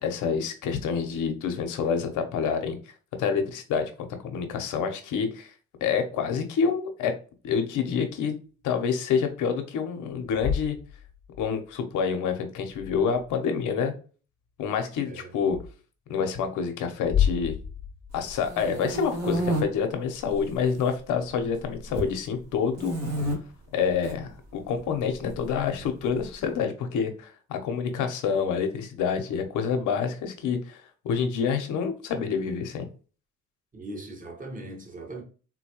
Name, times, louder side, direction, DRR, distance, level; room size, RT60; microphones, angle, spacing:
voice 1, 0.0-2.8 3.2-5.5 5.8-7.1 7.4-8.3 8.6-10.8 11.4-13.9 14.6-15.6 16.1-17.6 18.1-22.9 23.7-32.9, left 6 dB, 85° left, 0.8 m, -27 dB
sound 1, 10.1-11.6 12.7-13.4 15.5-15.7 17.0-18.9, left 9 dB, 45° left, 0.5 m, -31 dB
sound 2, 18.2-19.6 20.3-20.9 21.2-22.1 22.7-23.3 23.9-24.1 25.3-26.2, right 1 dB, 60° right, 1.5 m, -30 dB
voice 2, 33.7-35.2, right 2 dB, 25° right, 1.1 m, -39 dB
3.9 x 2.2 x 2.9 m
cardioid pair, 90°, 30 cm